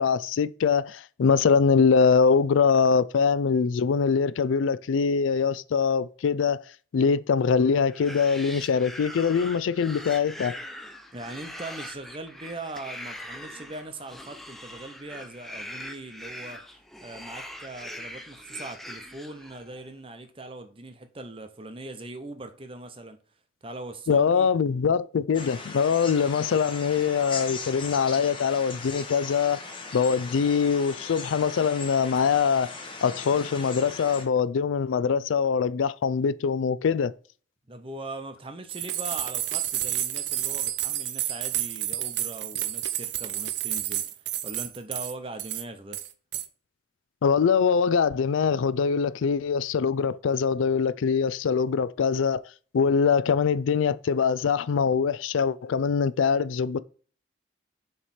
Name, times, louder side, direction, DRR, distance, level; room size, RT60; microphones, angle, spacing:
voice 1, 0.0-6.6 6.9-10.5 24.1-29.6 29.9-32.7 33.0-37.1 47.2-52.4 52.7-56.8, left 6 dB, 85° left, 0.4 m, -23 dB
sound 1, 7.8-19.8, left 1 dB, ahead, 0.5 m, -42 dB
voice 2, 11.1-16.6 17.0-23.2 23.6-24.5 37.7-46.0, right 2 dB, 30° right, 0.7 m, -40 dB
sound 2, 25.3-34.2, left 4 dB, 25° left, 0.9 m, -39 dB
sound 3, 38.7-45.1 45.4-45.6 45.9-46.5, right 12 dB, 60° right, 0.5 m, -30 dB
7.1 x 3.3 x 4.3 m
head